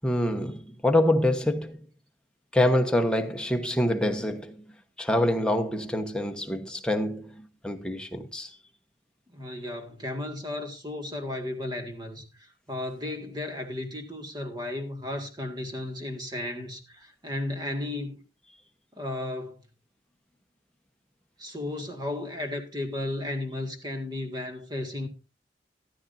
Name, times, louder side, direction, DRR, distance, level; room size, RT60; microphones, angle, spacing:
voice 1, 0.0-1.8 2.5-4.6 5.0-8.5, left 1 dB, 5° left, 1.0 m, -26 dB
voice 2, 9.3-18.2 18.9-19.6 21.4-25.1, left 1 dB, 25° right, 1.8 m, -34 dB
14.0 x 12.0 x 2.6 m
head